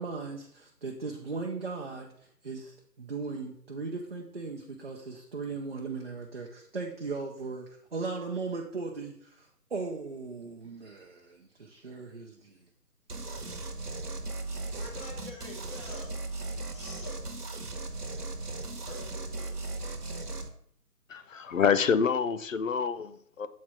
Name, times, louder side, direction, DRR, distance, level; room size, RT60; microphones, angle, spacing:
voice 1, 0.0-2.1 2.4-12.6, right 4 dB, 40° right, 0 dB, 0.6 m, -38 dB
sound 1, 13.1-20.5, right 2 dB, 70° right, 1.2 m, -37 dB
voice 2, 14.3-16.2 16.7-17.2 17.9-18.0 18.8-19.6, left 2 dB, 20° left, -4 dB, 1.2 m, -47 dB
voice 3, 21.1-23.5, left 6 dB, 55° left, 12 dB, 0.5 m, -27 dB
7.4 x 3.2 x 5.6 m, 0.66 s
figure-of-eight pair, 150°, 48 cm